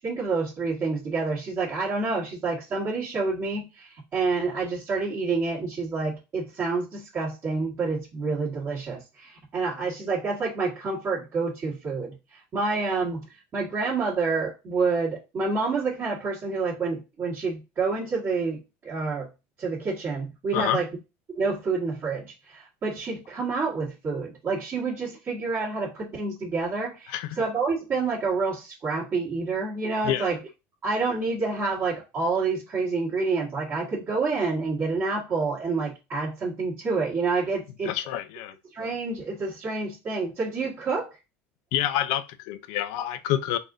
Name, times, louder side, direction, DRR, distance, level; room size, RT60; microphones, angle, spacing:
voice 1, 0.0-12.2 12.5-13.2 13.5-18.6 18.8-19.3 19.6-20.9 21.3-30.4 30.8-37.9 38.7-41.1, right 4 dB, 35° right, 1.5 m, -28 dB
voice 2, 37.8-38.5 41.7-43.6, left 12 dB, 75° left, 0.5 m, -27 dB
4.1 x 2.6 x 3.7 m
cardioid pair, 150°, 6 cm